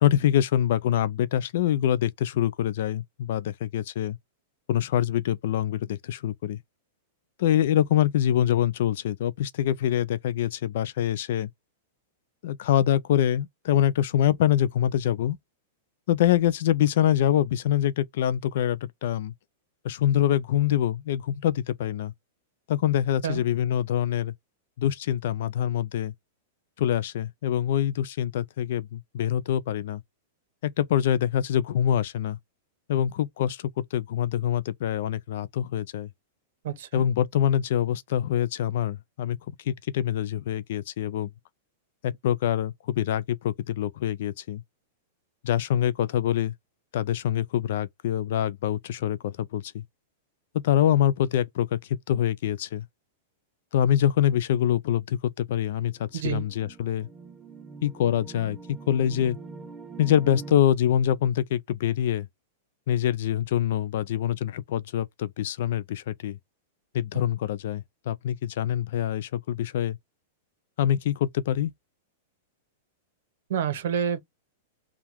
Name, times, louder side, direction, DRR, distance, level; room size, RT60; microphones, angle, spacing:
voice 1, 0.0-4.2 4.7-6.6 7.4-11.5 12.4-15.4 16.1-19.3 19.8-22.1 22.7-24.3 24.8-26.1 26.8-30.0 30.6-32.4 32.9-36.1 36.9-39.4 39.6-41.3 42.0-44.6 45.4-46.5 46.9-49.8 50.6-52.9 53.7-57.1 57.8-58.6 58.9-59.4 60.0-62.3 62.9-66.4 66.9-70.0 70.8-71.7, left 10 dB, 60° left, 0.4 m, -25 dB
voice 2, 36.6-37.0 56.1-56.5 67.1-67.2 73.5-74.2, right 8 dB, 65° right, 1.1 m, -28 dB
sound 1, 55.9-60.6, right 4 dB, 10° right, 0.5 m, -43 dB
3.5 x 2.4 x 4.3 m
supercardioid pair, 160°, 0 cm